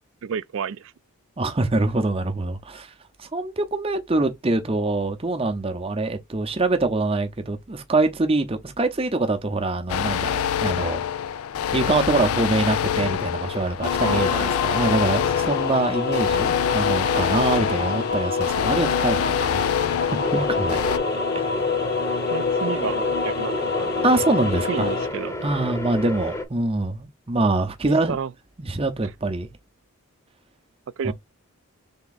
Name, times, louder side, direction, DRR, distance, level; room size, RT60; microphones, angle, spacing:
voice 1, 0.2-0.9 14.0-14.6 22.3-24.1 24.7-25.3 27.9-28.3 31.0-31.1, right 6 dB, 55° right, 0.3 m, -30 dB
voice 2, 1.4-2.9 3.2-11.0 11.7-19.7 20.0-20.9 21.3-21.6 24.0-24.9 25.4-28.2 28.6-29.5 31.0-31.1, right 2 dB, 25° right, 0.6 m, -24 dB
sound 1, 9.9-21.0, left 9 dB, 75° left, 0.3 m, -26 dB
sound 2, 13.8-25.1, left 5 dB, 45° left, 0.7 m, -26 dB
sound 3, 20.2-26.4, left 1 dB, 10° left, 0.7 m, -30 dB
3.6 x 3.4 x 4.0 m
head